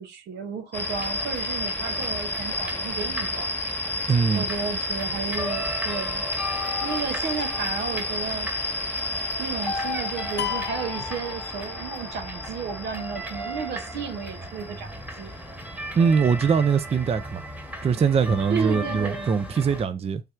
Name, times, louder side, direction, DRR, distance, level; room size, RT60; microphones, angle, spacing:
voice 1, 0.0-3.6 4.3-6.2 6.8-8.5 9.4-14.9 15.2-15.3 18.5-19.3, right 6 dB, 90° right, 0.9 m, -33 dB
sound 1, 0.7-17.4, left 2 dB, 10° left, 1.1 m, -32 dB
sound 2, 0.8-19.9, left 1 dB, 10° right, 1.4 m, -36 dB
voice 2, 4.1-4.4 15.9-17.4 17.8-20.2, right 6 dB, 35° right, 0.4 m, -22 dB
sound 3, 10.4-12.1, left 11 dB, 85° left, 0.4 m, -34 dB
3.4 x 2.3 x 4.3 m
cardioid pair, 65°, 17 cm